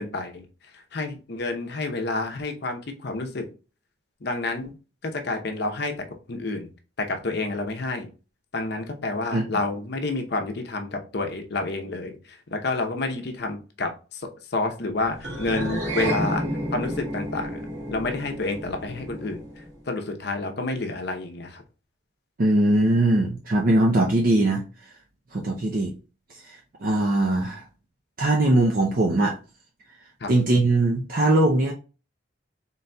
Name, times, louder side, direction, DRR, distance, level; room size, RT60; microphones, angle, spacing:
voice 1, 0.0-3.5 4.2-4.7 5.0-6.7 7.0-8.1 8.5-16.5 16.7-17.6 17.9-21.6 30.2-30.3, left 3 dB, 55° left, 4 dB, 0.7 m, -29 dB
sound 1, 15.2-19.8, right 1 dB, 70° right, 1.8 m, -31 dB
voice 2, 22.4-24.6 25.3-25.9 26.8-27.6 28.2-29.4 30.3-31.7, right 2 dB, 50° right, 0 dB, 0.5 m, -20 dB
4.0 x 3.9 x 2.2 m, 0.34 s
head